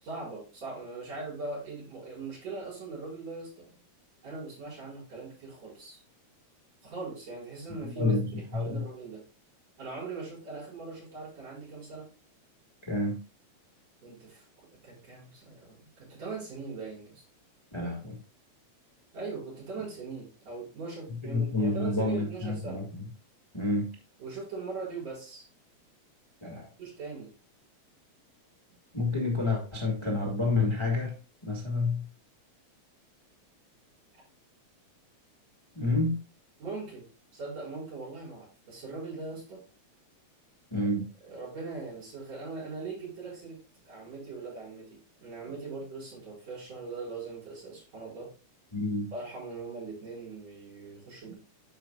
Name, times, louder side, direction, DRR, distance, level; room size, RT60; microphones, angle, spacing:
voice 1, 0.0-3.7 4.2-6.0 6.8-9.2 9.8-12.1 14.0-14.4 14.8-17.2 19.1-22.9 24.2-25.5 26.8-27.3 36.6-39.6 41.2-43.6 43.9-44.8 45.2-48.3 49.1-51.3, right 3 dB, 65° right, -6 dB, 5.9 m, -40 dB
voice 2, 12.9-13.2 17.7-18.2 21.3-22.8 23.5-23.9 26.4-26.7 28.9-31.1 31.5-32.0 35.7-36.2 40.7-41.0 48.7-49.1, left 2 dB, 15° left, -1 dB, 1.0 m, -28 dB
12.0 x 5.1 x 2.4 m, 0.33 s
omnidirectional pair, 3.3 m